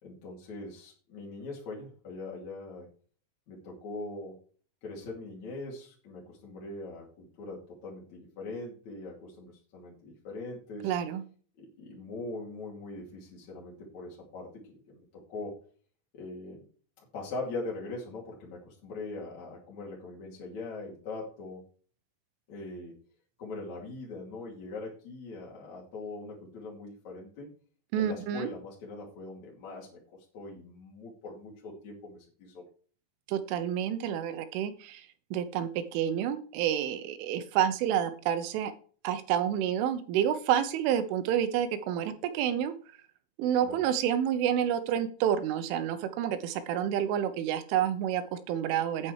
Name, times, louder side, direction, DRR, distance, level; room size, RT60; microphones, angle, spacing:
voice 1, 0.0-2.9 3.5-4.4 4.8-10.9 11.6-15.0 15.3-15.6 16.1-16.6 17.0-21.7 22.5-22.9 23.4-27.5 27.9-32.6 43.6-43.8, left 2 dB, 45° left, -4 dB, 3.2 m, -41 dB
voice 2, 10.8-11.2 27.9-28.5 33.3-38.7 39.0-42.7 43.4-49.1, right 10 dB, 80° right, 11 dB, 3.5 m, -29 dB
9.5 x 8.8 x 4.8 m, 0.43 s
omnidirectional pair, 5.6 m